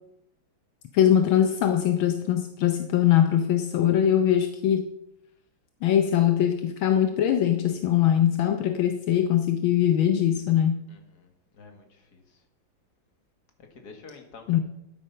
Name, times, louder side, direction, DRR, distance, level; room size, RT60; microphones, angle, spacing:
voice 1, 0.9-4.9 5.8-10.8 14.5-14.6, left 10 dB, 80° left, 7 dB, 1.6 m, -22 dB
voice 2, 10.9-12.4 13.7-14.6, left 4 dB, 50° left, 4 dB, 2.3 m, -49 dB
12.0 x 8.8 x 5.7 m, 0.81 s
omnidirectional pair, 2.2 m